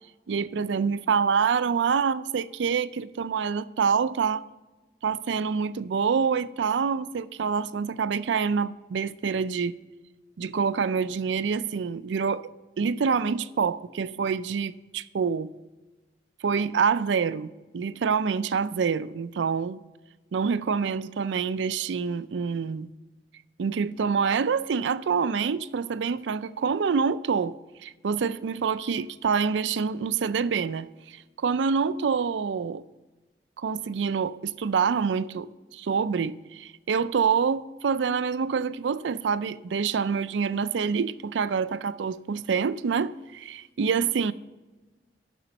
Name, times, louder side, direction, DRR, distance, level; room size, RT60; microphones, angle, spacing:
voice 1, 0.3-4.4 5.0-9.8 10.4-12.5 12.8-15.5 16.4-19.8 20.3-22.9 23.6-27.5 27.8-32.8 33.6-44.3, right 6 dB, 85° right, 0.4 m, -26 dB
6.9 x 6.1 x 6.8 m
head